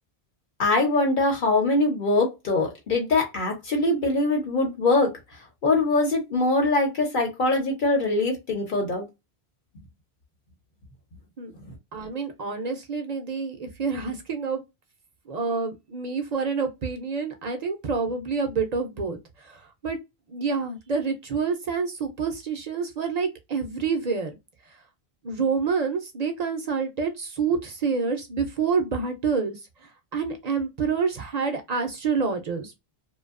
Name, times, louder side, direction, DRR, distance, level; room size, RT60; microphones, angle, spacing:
voice 1, 0.6-5.1 5.6-9.1 11.5-11.6, left 2 dB, 55° left, 0.9 m, -23 dB
voice 2, 11.9-14.6 15.3-20.0 20.3-24.3 25.2-29.6 30.1-32.7, right 5 dB, 50° right, 0.5 m, -27 dB
2.6 x 2.2 x 2.4 m
omnidirectional pair, 1.1 m